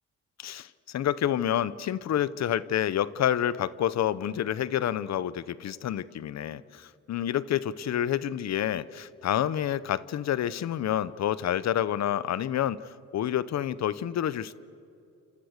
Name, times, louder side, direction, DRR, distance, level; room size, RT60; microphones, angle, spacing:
voice 1, 0.4-14.5, left 10 dB, 60° left, 18 dB, 0.9 m, -28 dB
28.5 x 27.0 x 6.6 m, 2.7 s
cardioid pair, 90°, 30 cm